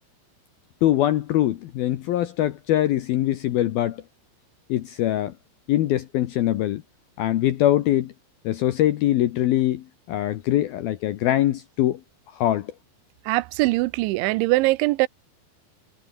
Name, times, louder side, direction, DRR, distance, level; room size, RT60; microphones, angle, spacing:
voice 1, 0.8-4.0 4.7-5.3 5.7-6.8 7.2-8.1 8.4-12.0 12.3-12.7, left 13 dB, 70° left, 2.4 m, -23 dB
voice 2, 13.3-15.1, right 21 dB, 85° right, 2.9 m, -22 dB
omnidirectional pair, 5.5 m